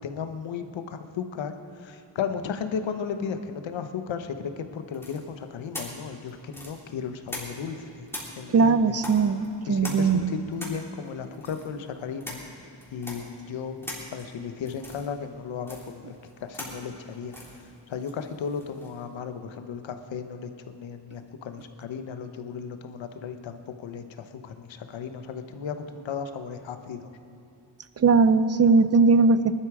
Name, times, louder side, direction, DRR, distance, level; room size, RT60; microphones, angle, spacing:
voice 1, 0.0-8.1 8.4-9.0 9.7-12.5 12.9-17.3 17.9-27.1, left 6 dB, 85° left, 8 dB, 1.1 m, -35 dB
sound 1, 4.9-7.8 8.1-19.0, left 1 dB, 5° left, 3.5 m, -42 dB
voice 2, 8.5-9.4 9.7-10.3 28.0-29.6, right 4 dB, 35° right, 13 dB, 0.5 m, -19 dB
19.5 x 12.0 x 4.9 m, 2.9 s
wide cardioid pair, 125°, 44 cm